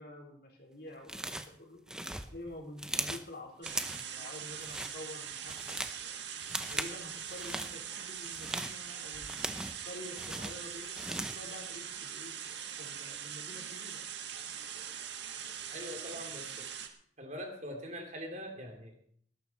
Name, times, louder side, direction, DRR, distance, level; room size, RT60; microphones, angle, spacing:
voice 1, 0.0-1.8 2.3-6.2 6.6-9.4 9.8-12.3 12.8-14.0, left 1 dB, 50° left, 0 dB, 4.0 m, -48 dB
sound 1, 1.1-1.6 1.9-3.3 3.7-4.1 4.5-4.9 5.3-6.0 6.4-7.0 7.3-7.7 8.2-9.8 10.2-11.5, right 1 dB, 5° right, 0.7 m, -38 dB
sound 2, 3.6-16.9, right 8 dB, 65° right, 1.7 m, -42 dB
voice 2, 15.7-16.7 17.2-19.0, equal, 35° right, 3 dB, 2.8 m, -43 dB
19.5 x 11.5 x 4.3 m, 0.63 s
head